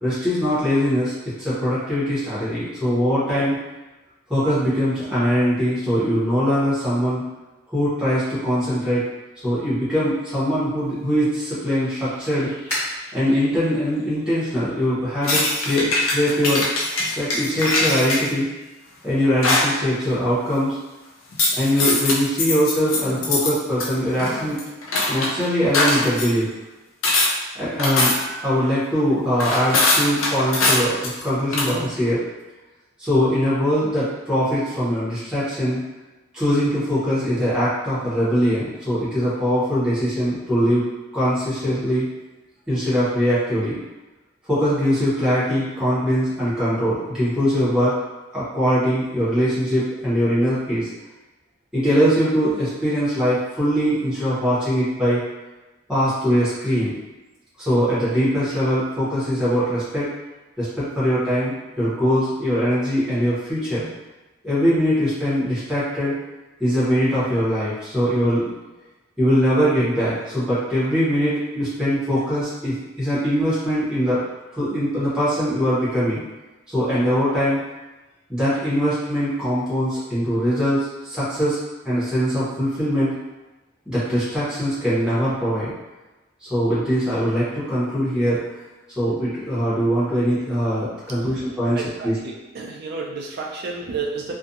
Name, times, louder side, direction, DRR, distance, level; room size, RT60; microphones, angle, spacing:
voice 1, 0.0-3.6 4.3-7.2 7.7-9.0 9.4-12.5 13.1-16.7 17.2-18.5 19.0-20.8 21.6-24.6 25.1-26.5 27.5-28.2 28.4-32.2 33.0-35.8 36.3-40.8 41.1-42.0 42.7-43.8 44.5-48.0 48.3-50.9 51.7-55.2 55.9-56.9 57.6-60.1 60.6-63.9 64.4-66.1 66.6-68.6 69.2-74.2 74.6-76.2 76.7-77.6 78.3-81.6 81.8-83.1 83.9-85.7 86.4-88.4 89.0-92.1, equal, 5° right, -11 dB, 0.8 m, -22 dB
sound 1, 10.8-16.0, equal, 15° left, 1.3 m, -37 dB
sound 2, 15.2-18.3 19.4-19.8 21.3-23.5 23.8-25.3 25.7-26.3 27.0-27.3 27.8-28.4 29.4-31.2 31.5-31.7, left 2 dB, 80° left, 0.5 m, -22 dB
voice 2, 91.8-94.3, right 4 dB, 50° right, -1 dB, 0.4 m, -31 dB
2.5 x 2.2 x 2.6 m, 1.1 s
head